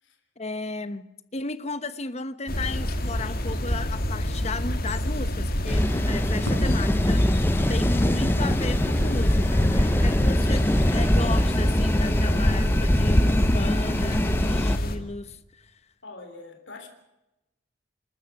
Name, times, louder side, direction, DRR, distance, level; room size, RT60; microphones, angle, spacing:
voice 1, 0.4-1.1 1.3-7.2 7.7-15.7, left 3 dB, 35° left, 1.0 m, -34 dB
Crackle, 2.4-10.2, equal, 85° right, 6.4 m, -45 dB
sound 1, 2.5-15.0, left 1 dB, 50° left, 2.2 m, -28 dB
sound 2, 5.7-14.8, left 1 dB, 10° left, 0.8 m, -23 dB
voice 2, 16.0-16.9, left 3 dB, 70° left, 3.5 m, -45 dB
28.0 x 13.0 x 7.9 m
head